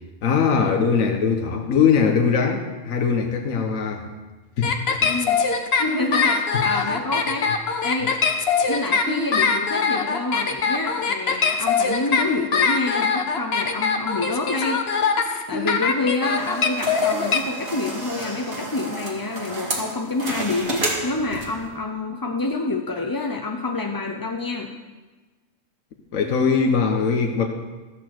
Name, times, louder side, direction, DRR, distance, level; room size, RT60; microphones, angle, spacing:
voice 1, 0.2-4.0 4.6-5.2 6.5-6.8 26.1-27.5, left 6 dB, 80° left, 3 dB, 1.4 m, -21 dB
sound 1, 4.6-17.4, left 5 dB, 50° left, 1.1 m, -22 dB
voice 2, 5.0-5.4 5.8-7.5 7.8-8.1 8.7-14.8 15.5-24.7, left 3 dB, 25° left, 2 dB, 0.5 m, -27 dB
sound 2, 16.2-21.7, right 2 dB, 45° right, 2.3 m, -31 dB
15.0 x 6.7 x 7.6 m, 1.2 s
omnidirectional pair, 1.4 m